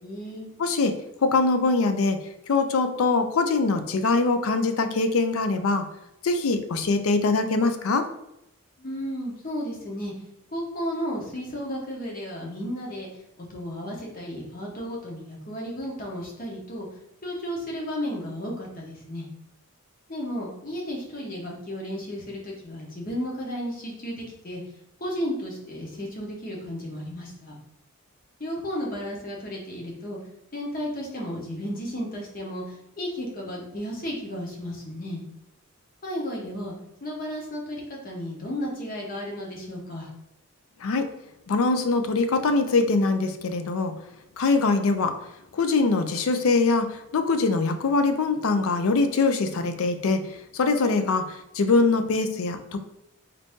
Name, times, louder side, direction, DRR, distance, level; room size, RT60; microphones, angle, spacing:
voice 1, 0.0-0.5 8.8-10.1 10.5-13.1 13.4-16.9 17.2-19.3 20.1-24.6 25.0-27.6 28.4-30.2 30.5-32.6 33.0-35.2 36.0-36.7 37.0-40.1, equal, 40° left, -2 dB, 1.0 m, -33 dB
voice 2, 0.6-5.9 6.2-8.1 40.8-41.1 41.5-43.9 44.4-45.2 45.5-52.8, left 3 dB, 75° left, 8 dB, 0.5 m, -23 dB
4.0 x 2.7 x 3.5 m, 0.85 s
head